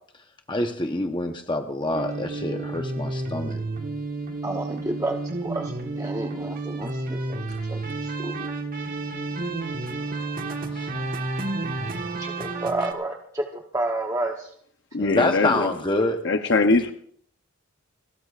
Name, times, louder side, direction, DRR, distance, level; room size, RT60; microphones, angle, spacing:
voice 1, 0.5-3.6 10.7-10.9 15.0-16.2, left 2 dB, 25° left, 5 dB, 0.9 m, -26 dB
sound 1, 1.9-12.9, right 2 dB, 40° right, 1.4 m, -31 dB
voice 2, 4.4-8.5 12.2-14.5 15.5-15.7, right 2 dB, 15° right, 2 dB, 0.9 m, -31 dB
voice 3, 14.9-15.7 16.2-16.9, left 3 dB, 60° left, 6 dB, 0.7 m, -21 dB
29.0 x 13.0 x 2.5 m, 0.62 s
head